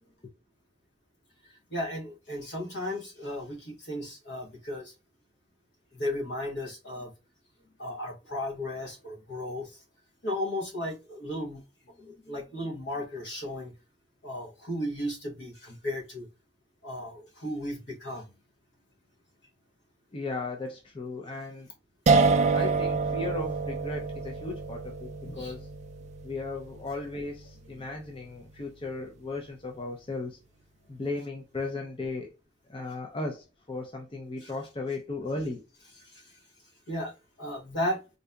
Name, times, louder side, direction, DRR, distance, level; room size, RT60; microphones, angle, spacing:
voice 1, 1.7-4.9 5.9-7.1 7.8-9.8 10.2-13.7 14.2-16.3 16.8-18.3 25.2-25.5 34.4-34.5 36.1-36.2 36.9-37.1 37.4-38.0, left 1 dB, 70° left, 1.2 m, -35 dB
voice 2, 20.1-21.7 22.5-25.7 26.2-30.4 30.9-32.3 32.7-35.6, left 3 dB, 30° left, 0.5 m, -36 dB
sound 1, 22.1-29.0, right 4 dB, 40° right, 0.3 m, -28 dB
4.0 x 2.6 x 2.3 m
head